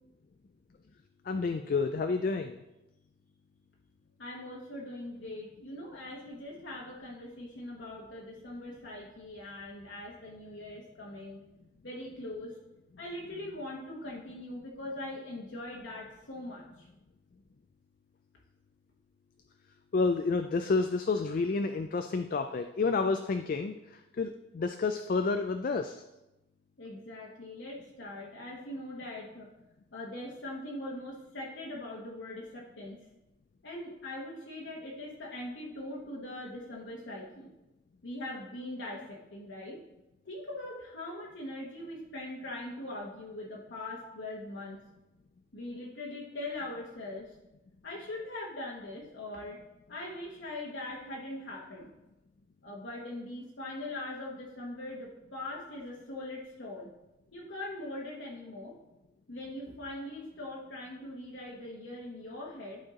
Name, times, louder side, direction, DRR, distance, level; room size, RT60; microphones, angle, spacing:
voice 1, 1.3-2.6 19.9-23.7 24.2-26.0, left 4 dB, 45° left, 7 dB, 0.3 m, -29 dB
voice 2, 4.2-11.4 11.8-12.5 13.0-16.9 26.8-29.5 29.9-33.0 33.6-37.5 38.0-39.8 40.2-44.8 45.5-47.3 47.8-49.6 49.9-51.9 52.6-56.9 57.3-58.7 59.3-62.8, left 1 dB, 75° left, -4 dB, 1.2 m, -41 dB
11.5 x 4.5 x 3.7 m, 0.95 s
head